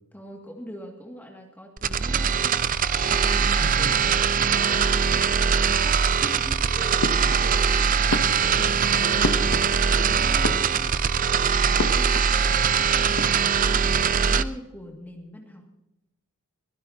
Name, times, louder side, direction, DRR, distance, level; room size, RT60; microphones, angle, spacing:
voice 1, 0.1-2.7 3.0-7.1 7.4-7.6 8.0-8.3 9.9-10.9 11.4-15.7, equal, 10° left, 0 dB, 2.2 m, -42 dB
sound 1, 1.8-14.4, right 6 dB, 35° right, 0.5 m, -22 dB
voice 2, 3.0-4.2 7.1-8.1 8.4-9.5 9.9-10.6, right 1 dB, 75° right, 2 dB, 5.3 m, -39 dB
sound 2, 7.0-7.7 8.1-10.0 10.3-11.2 11.8-12.4 12.7-12.8 13.0-13.7, left 2 dB, 80° left, 0.9 m, -31 dB
Wind instrument woodwind instrument, 7.9-10.4 11.0-14.5, equal, 20° right, 3.1 m, -51 dB
23.0 x 16.5 x 2.9 m, 0.87 s
head